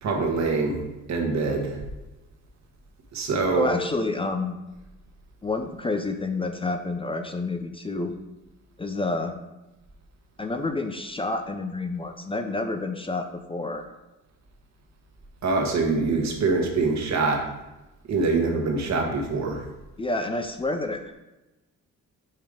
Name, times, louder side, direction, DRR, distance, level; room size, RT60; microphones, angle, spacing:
voice 1, 0.0-0.8 1.1-1.8 3.1-3.7 15.4-17.4 18.1-19.6, right 3 dB, 65° right, 1 dB, 1.5 m, -24 dB
voice 2, 3.5-4.6 5.4-8.1 8.8-9.3 10.4-13.9 20.0-21.1, left 2 dB, 20° left, 6 dB, 0.5 m, -29 dB
5.6 x 5.0 x 5.0 m, 1.0 s
cardioid pair, 90°, 30 cm